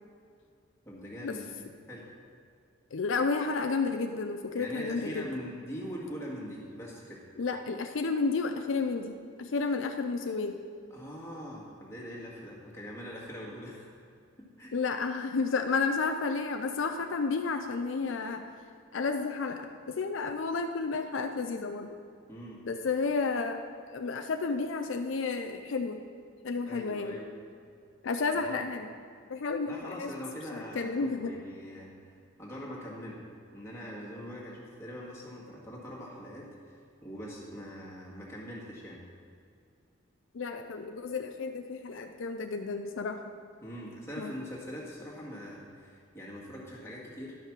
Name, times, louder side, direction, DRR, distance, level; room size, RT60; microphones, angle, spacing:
voice 1, 0.8-1.6 1.9-2.1 4.5-7.2 10.9-13.9 14.4-14.7 22.3-22.6 26.7-27.3 28.3-28.6 29.7-32.1 32.4-33.2 33.5-36.8 37.0-39.0 43.6-47.4, equal, 15° left, -5 dB, 1.9 m, -42 dB
voice 2, 2.9-5.3 7.4-10.6 14.7-18.4 18.9-21.9 22.7-23.6 23.9-26.0 26.4-27.2 28.0-28.9 29.3-30.1 30.5-31.3 40.3-43.2 44.2-44.3, left 4 dB, 70° left, 6 dB, 0.5 m, -31 dB
11.5 x 5.7 x 6.0 m, 2.3 s
head